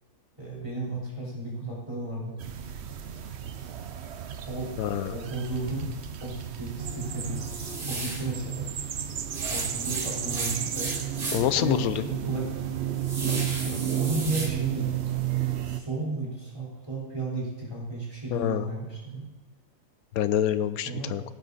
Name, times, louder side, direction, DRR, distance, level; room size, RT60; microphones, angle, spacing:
voice 1, 0.4-2.4 4.5-4.7 5.1-5.9 6.2-7.5 7.9-8.7 9.5-10.9 11.5-12.5 13.2-14.9 15.6-19.3 20.8-21.1, right 2 dB, 20° right, -5 dB, 4.2 m, -33 dB
sound 1, 2.4-15.8, right 10 dB, 55° right, 0.9 m, -33 dB
voice 2, 4.8-5.1 11.3-12.0 18.3-18.7 20.1-21.2, left 11 dB, 75° left, 13 dB, 1.1 m, -26 dB
sound 2, 7.4-8.3 9.3-11.6 12.0-12.1 12.6-14.5, right 2 dB, 75° right, 2.8 m, -35 dB
17.5 x 9.3 x 4.1 m, 1.3 s
omnidirectional pair, 1.6 m